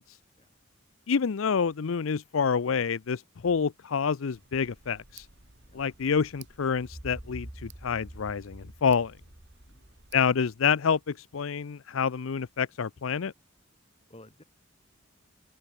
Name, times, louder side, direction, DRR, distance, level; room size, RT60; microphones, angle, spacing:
voice 1, 1.1-5.3 5.7-9.1 10.1-13.3, left 6 dB, 75° left, 0.5 m, -28 dB
Tick, 4.3-10.4, right 4 dB, 55° right, 4.8 m, -56 dB
sound 1, 6.8-10.7, right 1 dB, 15° right, 0.8 m, -46 dB
voice 2, 14.1-14.4, left 1 dB, 30° left, 4.9 m, -53 dB
head